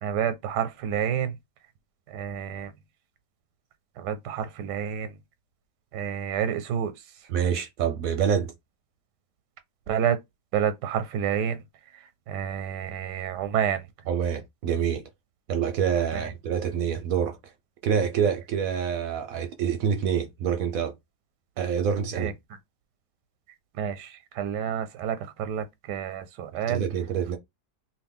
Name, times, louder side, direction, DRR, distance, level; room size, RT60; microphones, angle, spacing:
voice 1, 0.0-1.3 2.1-2.7 4.0-5.1 5.9-6.9 9.9-10.2 10.5-11.6 12.3-13.8 22.2-22.3 23.8-26.8, right 9 dB, 85° right, 1.2 m, -29 dB
voice 2, 7.3-8.5 14.1-15.0 15.5-17.5 17.8-20.9 21.6-22.3 26.7-27.4, right 7 dB, 70° right, 0.9 m, -26 dB
2.9 x 2.6 x 3.5 m
omnidirectional pair, 1.8 m